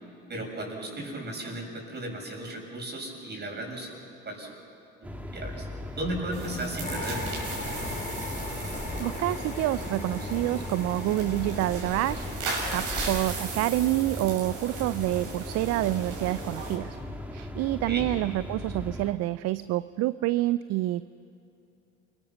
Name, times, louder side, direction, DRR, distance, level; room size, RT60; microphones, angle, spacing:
voice 1, 0.3-3.9 4.2-4.5 5.0-5.7 6.0-7.3 17.9-18.1, right 1 dB, 30° right, 0 dB, 7.1 m, -35 dB
sound 1, 5.0-19.1, left 1 dB, 5° right, 2.1 m, -38 dB
sound 2, 6.3-16.7, right 3 dB, 65° right, 6.8 m, -37 dB
sound 3, 6.8-13.1, left 3 dB, 25° left, 4.1 m, -38 dB
voice 2, 9.0-17.0 17.3-21.0, right 16 dB, 50° right, 16 dB, 0.5 m, -28 dB
29.0 x 23.0 x 6.0 m, 2.8 s
hypercardioid pair, 75°, 34 cm